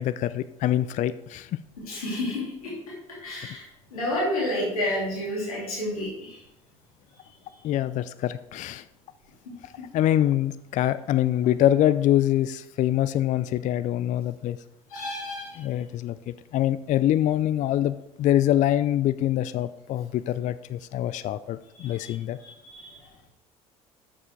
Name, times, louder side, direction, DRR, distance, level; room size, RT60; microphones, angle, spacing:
voice 1, 0.0-1.5 7.6-8.8 9.9-14.6 15.6-22.4, left 12 dB, 45° left, 15 dB, 0.4 m, -24 dB
voice 2, 1.9-2.7 3.2-3.6 3.9-6.4 14.9-15.6 21.8-22.1 22.4-23.0, left 1 dB, 85° left, -4 dB, 2.8 m, -30 dB
7.4 x 6.8 x 4.5 m, 0.84 s
hypercardioid pair, 65°, 18 cm